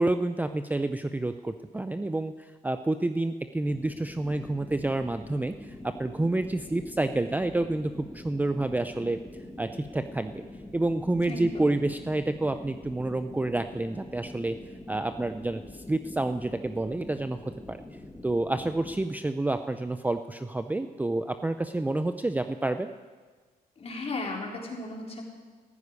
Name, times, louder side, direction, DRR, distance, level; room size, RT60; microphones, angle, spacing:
voice 1, 0.0-9.2 9.6-10.4 10.7-14.6 14.9-17.8 18.2-22.9, right 2 dB, 10° right, 9 dB, 0.5 m, -29 dB
sound 1, 3.7-19.0, left 1 dB, 10° left, 2.1 m, -45 dB
voice 2, 11.2-11.7 23.8-25.2, left 2 dB, 40° left, -1 dB, 3.8 m, -35 dB
14.5 x 10.0 x 9.6 m, 1.5 s
cardioid pair, 110°, 16 cm